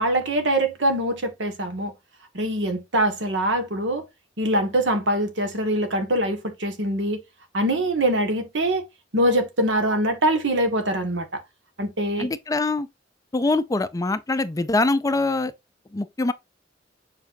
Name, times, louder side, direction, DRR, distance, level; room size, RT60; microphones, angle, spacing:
voice 1, 0.0-1.9 2.3-4.0 4.4-7.2 7.5-8.8 9.1-11.4 11.8-12.3, right 1 dB, 70° right, 1.6 m, -23 dB
voice 2, 12.2-12.9 13.3-15.5 15.9-16.3, left 2 dB, 20° left, 0.4 m, -23 dB
7.3 x 4.9 x 2.7 m
head